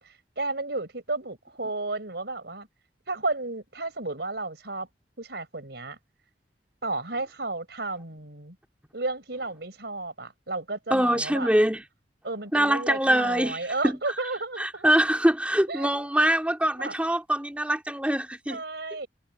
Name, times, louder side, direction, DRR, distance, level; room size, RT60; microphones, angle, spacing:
voice 1, 0.0-2.7 3.1-4.9 5.2-6.0 6.8-8.6 8.9-11.5 12.2-14.9 15.7-16.0 16.7-16.9 18.5-19.1, right 2 dB, 65° right, 5.8 m, -33 dB
voice 2, 10.9-11.8 12.5-13.6 14.6-18.6, right 1 dB, 5° right, 3.7 m, -23 dB
head